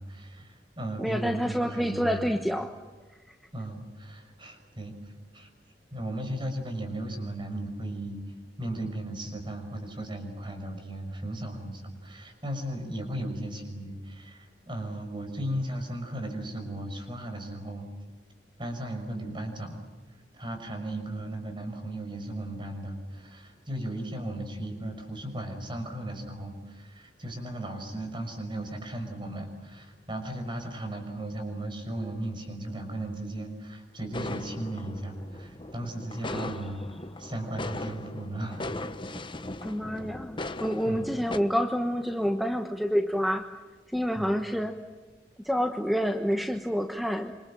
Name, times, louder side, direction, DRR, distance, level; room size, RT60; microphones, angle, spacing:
voice 1, 0.0-2.3 3.5-5.5 5.9-8.3 8.6-17.9 18.6-19.8 20.1-36.8 37.2-38.7 40.9-41.1 44.2-44.4, right 1 dB, 30° right, 5 dB, 5.9 m, -36 dB
voice 2, 1.0-2.7 3.3-3.4 36.3-36.5 39.6-43.5 43.9-44.8 45.4-47.3, equal, ahead, 5 dB, 1.1 m, -28 dB
sound 1, 34.1-41.4, left 2 dB, 30° left, 1.1 m, -38 dB
27.0 x 26.0 x 7.5 m, 1.3 s
head